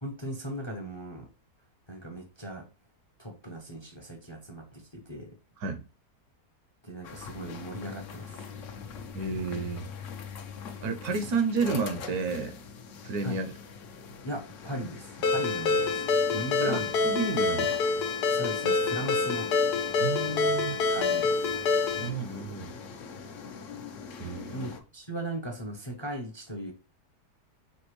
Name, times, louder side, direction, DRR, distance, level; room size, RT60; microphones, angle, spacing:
voice 1, 0.0-1.3 1.9-2.6 3.2-5.3 6.8-8.4 13.2-13.4 14.2-16.0 16.3-17.1 18.3-19.5 20.9-21.4 24.5-26.7, right 1 dB, 25° left, 0.7 m, -38 dB
sound 1, 7.0-24.8, left 6 dB, 60° left, 0.9 m, -43 dB
voice 2, 9.1-9.9 10.8-12.6 13.0-13.5 16.4-17.7 20.0-20.8 22.0-22.7 24.2-24.7, right 4 dB, 70° right, 1.2 m, -31 dB
Ringtone, 15.2-22.1, left 4 dB, 80° left, 1.3 m, -26 dB
5.3 x 3.0 x 3.1 m
omnidirectional pair, 1.7 m